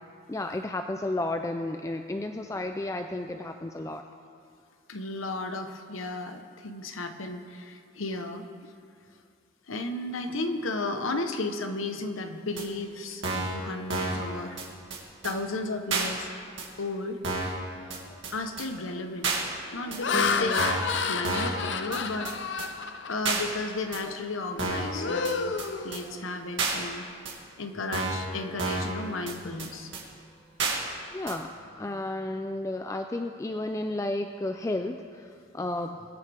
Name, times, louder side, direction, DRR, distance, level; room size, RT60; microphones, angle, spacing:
voice 1, 0.3-4.0 20.1-20.6 31.1-36.1, left 2 dB, 15° left, 6 dB, 0.3 m, -32 dB
voice 2, 4.9-8.7 9.7-14.6 15.2-16.3 16.8-17.2 18.3-19.4 19.7-20.8 21.1-22.3 23.1-27.1 27.6-29.9, left 2 dB, 85° left, 7 dB, 0.9 m, -34 dB
sound 1, 12.6-12.7 13.2-13.6 13.9-14.2 14.6-14.7 14.9-15.0 15.2-15.3 15.9-16.1 16.6-16.7 17.2-17.6 17.9-18.0 18.2-18.3 18.6-18.7 19.2-19.4 19.9-20.0 20.6-20.9 21.2-21.6 21.9-22.0 22.2-22.3 22.6-22.7 23.2-23.4 23.9-24.0 24.6-24.9 25.2-25.3 25.6-25.7 25.9-26.0 26.6-26.7 27.2-27.3 27.9-28.2 28.6-28.9 29.3-29.4 29.6-29.7 29.9-30.0 30.6-30.8 31.3-31.4, right 3 dB, 65° right, 2.2 m, -29 dB
Laughter, 17.9-18.2 18.8-19.1 19.7-23.5 23.9-24.2 24.6-26.5, left 5 dB, 60° left, 0.6 m, -31 dB
22.0 x 9.2 x 3.4 m, 2.2 s
head